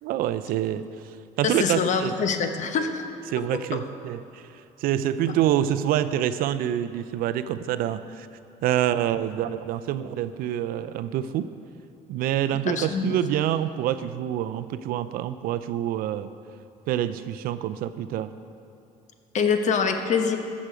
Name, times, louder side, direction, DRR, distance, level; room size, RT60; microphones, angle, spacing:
voice 1, 0.0-2.1 3.3-4.5 4.8-8.3 8.6-11.5 12.1-16.3 16.9-18.3, right 11 dB, 70° right, 12 dB, 0.5 m, -26 dB
voice 2, 1.4-3.0 3.7-3.8 12.7-13.2 19.3-20.4, left 6 dB, 50° left, 6 dB, 1.0 m, -24 dB
14.5 x 6.2 x 5.0 m, 2.6 s
supercardioid pair, 95°, 16 cm